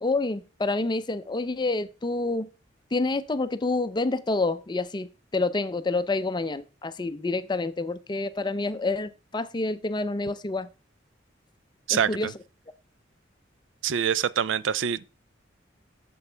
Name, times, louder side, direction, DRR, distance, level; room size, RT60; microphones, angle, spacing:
voice 1, 0.0-2.5 2.9-10.7 11.9-12.3, left 3 dB, 25° left, 0.5 m, -28 dB
voice 2, 13.8-15.1, right 8 dB, 75° right, 0.4 m, -25 dB
8.1 x 6.9 x 3.3 m
head